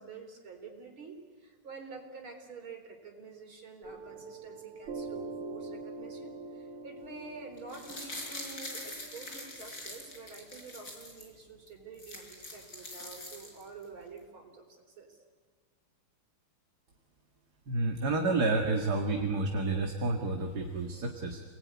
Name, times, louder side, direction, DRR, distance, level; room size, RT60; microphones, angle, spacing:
voice 1, 0.0-15.2, right 4 dB, 70° right, 3 dB, 4.9 m, -48 dB
Piano, 3.8-10.9, right 3 dB, 90° right, 3.5 m, -45 dB
sound 1, 7.6-11.3 11.7-11.8 11.9-13.8 14.2-14.3, left 1 dB, 45° left, 6.0 m, -44 dB
voice 2, 17.7-21.4, right 3 dB, 50° right, 3 dB, 2.5 m, -30 dB
30.0 x 20.5 x 9.7 m, 1.5 s
omnidirectional pair, 2.4 m